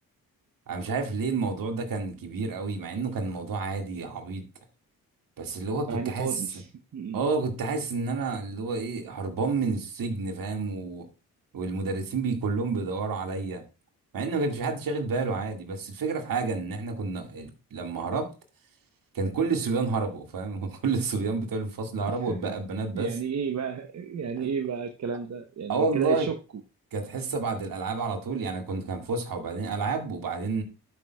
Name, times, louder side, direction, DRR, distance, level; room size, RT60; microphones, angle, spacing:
voice 1, 0.7-4.4 5.4-6.4 7.1-11.1 11.5-13.6 14.1-18.3 19.1-23.2 24.4-24.5 25.7-26.3 26.9-30.6, right 4 dB, 65° right, 2.0 m, -29 dB
voice 2, 5.9-6.7 6.9-7.2 22.1-22.5 22.9-26.4, right 6 dB, 50° right, 0.9 m, -32 dB
12.0 x 6.3 x 2.3 m
supercardioid pair, 60°, 37 cm